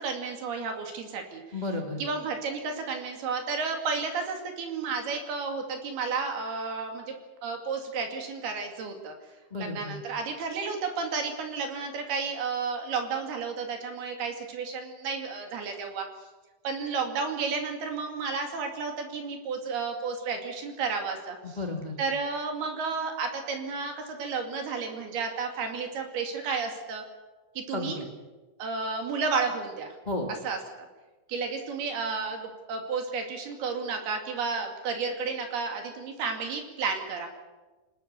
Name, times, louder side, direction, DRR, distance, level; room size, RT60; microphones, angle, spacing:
voice 1, 0.0-1.4 2.0-7.1 7.4-9.1 9.6-16.1 16.6-21.6 22.0-27.0 27.6-28.0 28.6-29.9 30.3-30.9 31.3-37.3, right 5 dB, 60° right, 4 dB, 4.2 m, -32 dB
voice 2, 1.5-2.0 9.5-9.9 21.6-21.9 27.7-28.0 30.0-30.3, left 2 dB, 35° left, 2 dB, 0.6 m, -32 dB
27.0 x 19.0 x 6.9 m, 1.2 s
omnidirectional pair, 5.4 m